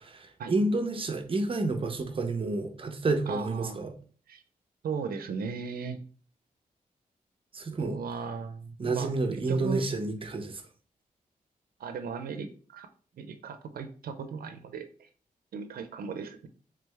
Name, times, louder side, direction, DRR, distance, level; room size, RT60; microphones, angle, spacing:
voice 1, 0.2-3.9 7.5-8.0 8.8-10.6, right 2 dB, 35° right, 0.6 m, -29 dB
voice 2, 3.3-3.8 4.3-4.4 4.8-6.0 7.8-9.1 9.5-9.8 11.8-12.9 13.2-15.1 15.5-16.5, right 5 dB, 80° right, 0.4 m, -37 dB
3.6 x 3.3 x 3.2 m
wide cardioid pair, 135°, 15 cm